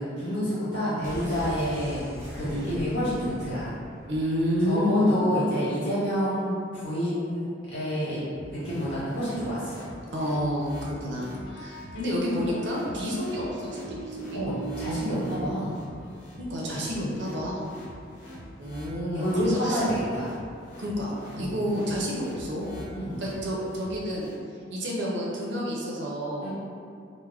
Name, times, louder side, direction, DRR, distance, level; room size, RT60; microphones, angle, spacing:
voice 1, 0.0-2.0 2.3-3.7 4.6-6.5 6.8-8.2 8.5-9.9 11.0-11.2 14.3-15.7 19.1-20.3 21.4-21.6 22.9-23.2 26.4-26.5, equal, 65° left, -11 dB, 1.3 m, -28 dB
sound 1, 1.0-4.8 5.1-5.2, equal, 15° right, 0.7 m, -41 dB
voice 2, 4.1-5.2 10.1-14.4 16.4-17.6 18.6-19.8 20.8-22.8 23.2-24.3 24.7-26.5, equal, 65° right, -3 dB, 0.5 m, -29 dB
sound 2, 8.3-24.3, equal, 45° left, 0.6 m, -44 dB
sound 3, 11.5-16.6, right 4 dB, 85° left, 0.3 m, -39 dB
2.3 x 2.0 x 3.3 m, 2.3 s
head